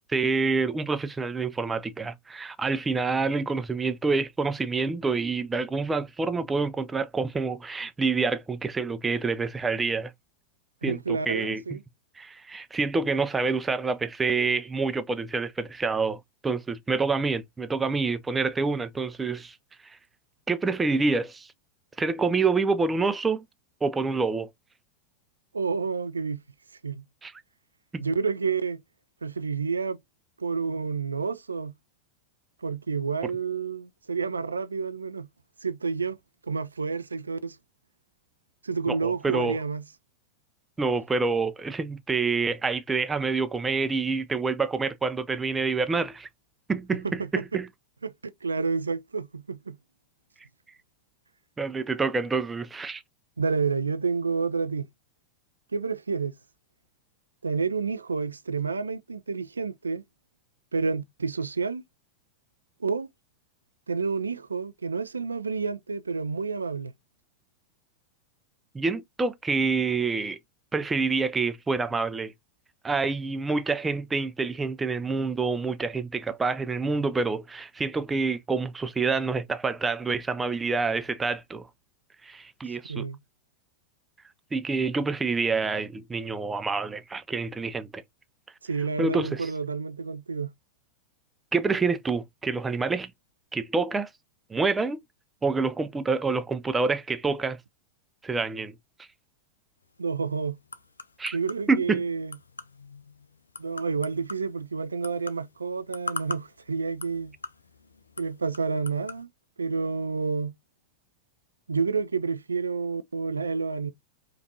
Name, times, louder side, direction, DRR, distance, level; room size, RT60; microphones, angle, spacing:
voice 1, 0.1-10.1 10.8-11.8 12.2-19.6 19.8-20.0 20.5-21.5 22.0-23.4 23.8-24.5 27.2-27.3 27.9-28.0 33.2-33.3 38.9-39.6 40.8-46.3 46.7-47.7 51.6-53.0 68.7-70.4 70.7-72.3 72.8-81.7 82.2-83.1 84.5-88.0 89.0-89.5 91.5-93.1 93.5-94.1 94.5-95.0 95.4-97.6 98.2-99.1 101.2-101.4 101.7-102.0, right 4 dB, 15° right, 0.5 m, -27 dB
voice 2, 10.8-11.8 25.5-26.4 26.8-27.0 28.0-28.8 29.2-30.0 30.4-31.7 32.6-35.3 35.6-36.2 36.4-37.6 38.6-39.8 46.9-47.3 48.0-49.8 53.4-54.9 55.7-56.3 57.4-60.0 60.7-61.8 62.8-63.1 63.9-66.9 82.9-83.2 88.6-90.5 100.0-100.6 101.3-102.4 103.6-107.3 108.2-109.3 109.6-110.5 111.7-113.9, right 5 dB, 75° right, 0.3 m, -29 dB
sound 1, 99.8-109.2, left 3 dB, 75° left, 0.4 m, -43 dB
5.1 x 2.4 x 2.7 m
figure-of-eight pair, 90°, 0 cm